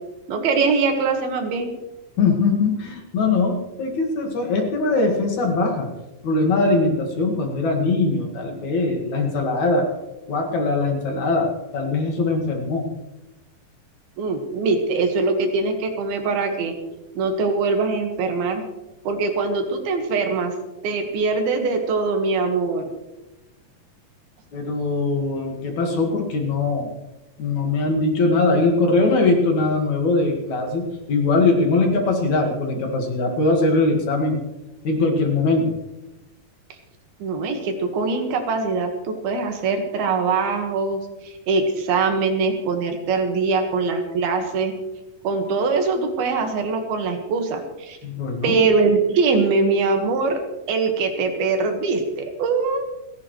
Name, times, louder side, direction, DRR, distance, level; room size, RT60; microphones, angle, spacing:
voice 1, 0.3-1.7 14.2-16.7 17.2-18.6 19.1-20.5 20.8-22.9 37.2-44.7 45.2-48.0 48.4-50.4 50.7-52.9, right 4 dB, 80° right, 4 dB, 3.6 m, -22 dB
voice 2, 2.2-5.9 6.2-9.9 10.3-12.9 24.5-26.9 27.4-34.4 34.8-35.7 48.0-48.6, left 3 dB, 55° left, 2 dB, 3.0 m, -21 dB
29.5 x 11.0 x 3.2 m, 1.0 s
omnidirectional pair, 4.3 m